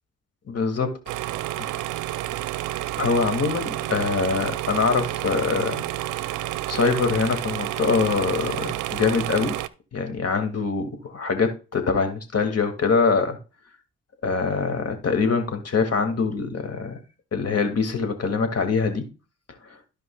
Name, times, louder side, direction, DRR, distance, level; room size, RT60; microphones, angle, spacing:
voice 1, 0.5-0.9 1.6-1.7 3.0-5.8 6.3-9.5 9.9-13.4 14.2-17.0 17.3-19.0, left 4 dB, 50° left, 6 dB, 2.2 m, -24 dB
sound 1, 1.1-9.7, right 15 dB, 70° right, 0.6 m, -30 dB
14.5 x 5.2 x 2.3 m, 0.33 s
hypercardioid pair, 45°, 32 cm